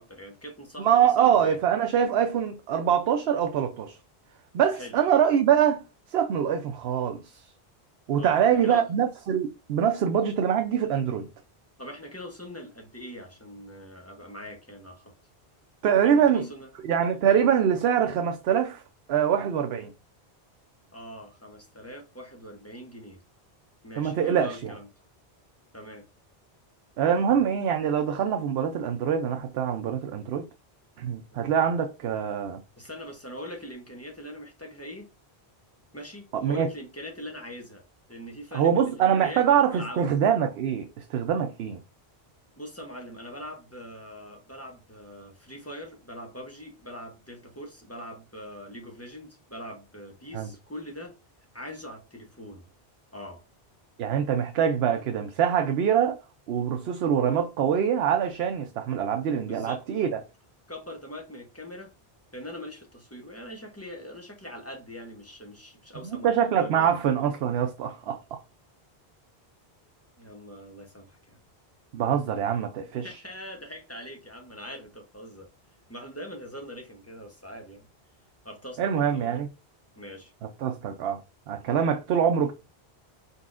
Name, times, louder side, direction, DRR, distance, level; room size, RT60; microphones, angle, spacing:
voice 1, 0.0-1.6 4.7-5.0 8.2-8.9 11.8-15.1 16.0-16.7 20.9-23.2 23.8-24.9 25.7-26.1 27.2-27.4 31.3-31.7 32.8-35.1 35.9-37.8 38.1-40.1 42.6-51.1 51.5-52.6 53.1-53.4 59.4-59.8 60.7-61.9 62.3-67.0 70.2-71.4 73.0-75.5 75.9-77.8 78.4-79.4 80.0-80.3, equal, 15° left, 0.9 m, -42 dB
voice 2, 0.8-4.0 4.5-5.8 6.1-7.4 8.1-11.3 15.8-16.5 16.8-18.8 19.1-19.9 24.0-24.7 27.0-30.5 31.0-32.6 36.3-36.7 38.5-41.8 50.3-50.5 54.0-56.2 56.5-60.2 66.0-68.4 71.9-73.1 78.8-79.5 80.6-81.2 81.5-82.5, right 8 dB, 75° right, 0.8 m, -24 dB
4.6 x 4.0 x 2.5 m
omnidirectional pair, 1.1 m